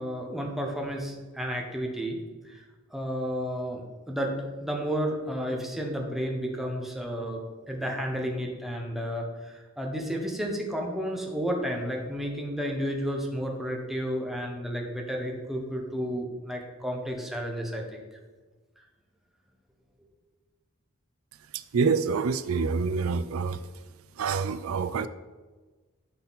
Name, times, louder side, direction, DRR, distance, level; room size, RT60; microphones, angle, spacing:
voice 1, 0.0-2.2 2.4-2.6 2.9-18.0, equal, ahead, 0 dB, 1.1 m, -32 dB
voice 2, 21.7-23.6 24.2-25.1, right 5 dB, 85° right, 13 dB, 0.4 m, -26 dB
12.0 x 4.2 x 4.1 m, 1.3 s
head